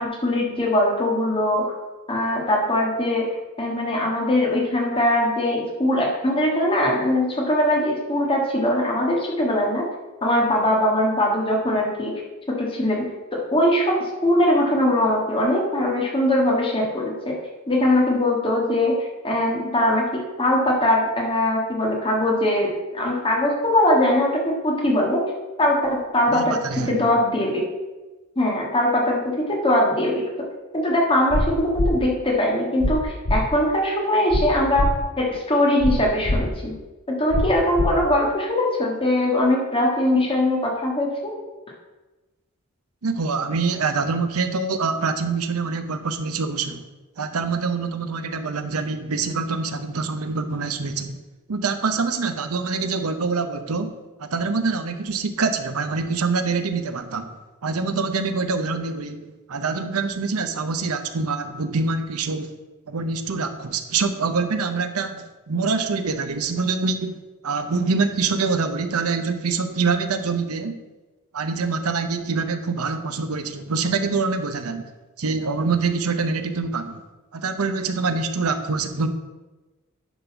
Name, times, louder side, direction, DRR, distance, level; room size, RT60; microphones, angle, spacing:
voice 1, 0.0-1.6 2.1-3.3 3.6-9.8 10.2-12.1 12.5-13.0 13.3-17.3 17.7-25.2 25.6-26.6 26.9-27.6 28.3-30.2 30.7-36.7 37.1-41.3, left 1 dB, 25° left, -2 dB, 1.5 m, -21 dB
voice 2, 26.3-27.1 43.0-46.8 47.2-51.2 51.5-53.9 54.2-57.3 57.6-62.5 62.9-67.2 67.4-70.8 71.3-74.9 75.2-77.0 77.3-79.1, right 4 dB, 80° right, 9 dB, 0.8 m, -25 dB
sound 1, 31.3-31.4 31.8-31.9 32.8-32.9 33.3-33.4 34.3-34.4 34.8-34.9 35.8-35.9 36.3-36.4 37.3-37.4 37.8-37.9, left 1 dB, 70° left, 1.0 m, -21 dB
10.0 x 4.0 x 5.9 m, 1.2 s
head